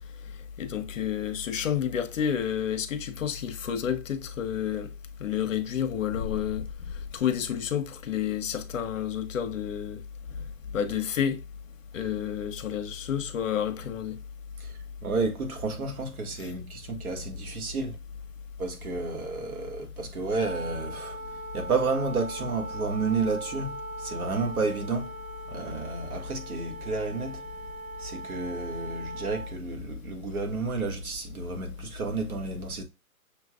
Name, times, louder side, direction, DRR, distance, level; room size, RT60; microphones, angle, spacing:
voice 1, 0.6-4.9 5.2-6.6 7.1-10.0 10.7-11.4 11.9-14.2 16.4-16.5, left 9 dB, 60° left, 1.0 m, -30 dB
voice 2, 14.6-18.0 18.6-21.2 21.5-25.1 25.5-27.4 28.0-32.8, right 3 dB, 75° right, 1.7 m, -31 dB
Wind instrument woodwind instrument, 20.4-29.6, right 1 dB, 30° right, 1.6 m, -40 dB
6.8 x 3.3 x 2.4 m
hypercardioid pair, 160°, 44 cm